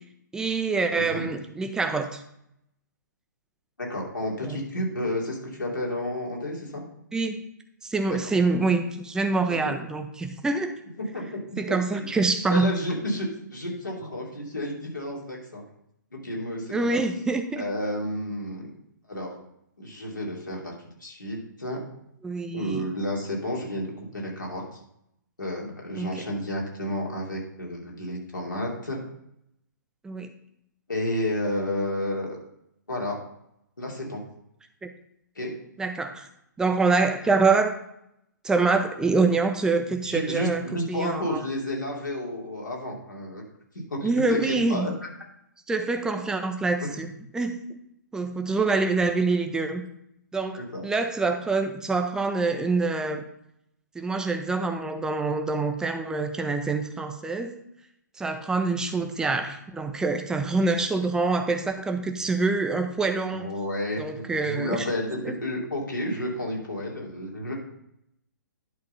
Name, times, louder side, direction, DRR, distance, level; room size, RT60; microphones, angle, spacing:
voice 1, 0.3-2.2 4.4-4.6 7.1-7.4 7.8-10.8 11.6-12.7 16.7-17.6 22.2-22.9 26.0-26.1 30.0-30.3 34.8-34.9 35.8-36.3 36.6-37.7 38.4-41.4 44.0-44.9 45.7-47.1 47.3-47.8 48.1-49.8 50.3-53.2 53.9-57.6 58.2-63.5 64.0-64.9 65.2-65.3, right 3 dB, 5° right, 5 dB, 0.7 m, -25 dB
voice 2, 3.8-6.8 8.1-8.2 9.6-9.7 11.1-11.4 11.7-12.1 12.5-15.6 16.2-17.0 17.6-18.7 19.1-19.4 19.8-20.7 21.0-21.8 22.5-23.9 24.1-24.6 25.4-29.0 30.9-32.4 32.9-33.2 33.8-34.2 35.4-35.5 40.0-43.4 43.9-44.9 46.8-46.9 50.6-50.8 63.3-67.5, left 1 dB, 80° left, -2 dB, 2.9 m, -31 dB
10.5 x 3.8 x 5.5 m, 0.76 s
figure-of-eight pair, 125°, 10 cm